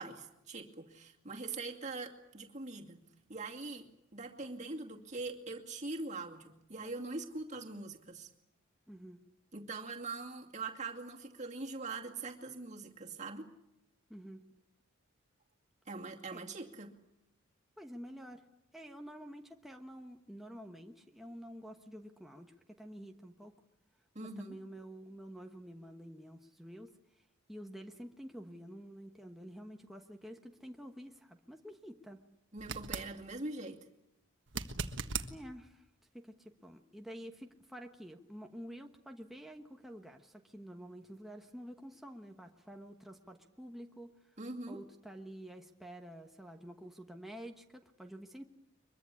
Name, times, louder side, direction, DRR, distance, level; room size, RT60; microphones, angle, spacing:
voice 1, 0.0-3.0 3.3-8.3 9.5-13.5 15.9-16.9 24.1-24.6 32.5-33.8 44.4-44.8, right 3 dB, 35° right, 2 dB, 2.4 m, -43 dB
voice 2, 8.9-9.2 14.1-14.4 16.3-16.5 17.8-18.4 18.7-23.5 24.2-26.9 27.5-32.2 35.3-35.9 36.1-44.1 44.7-48.4, equal, ahead, 3 dB, 1.2 m, -49 dB
sound 1, 32.6-33.1 34.5-35.3 38.3-38.4, right 5 dB, 60° right, 1.6 m, -38 dB
23.5 x 22.5 x 8.4 m, 0.86 s
head